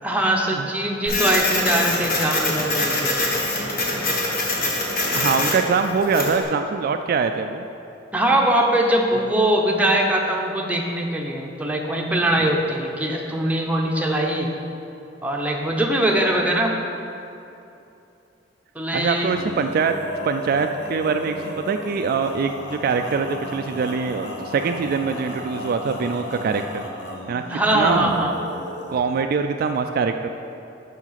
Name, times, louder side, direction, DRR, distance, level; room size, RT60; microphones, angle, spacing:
voice 1, 0.0-3.3 8.1-14.5 15.2-16.7 18.7-19.4 27.5-28.3, right 1 dB, 10° right, 0 dB, 0.8 m, -22 dB
Printer, 1.1-6.4, left 2 dB, 50° left, 1.3 m, -24 dB
voice 2, 5.1-7.7 12.4-12.5 18.9-19.9 20.2-26.9 27.3-28.1 28.9-30.3, right 5 dB, 50° right, 6 dB, 0.3 m, -23 dB
Male singing, 19.2-29.0, left 1 dB, 70° left, 1.1 m, -34 dB
7.2 x 5.9 x 5.7 m, 2.8 s
head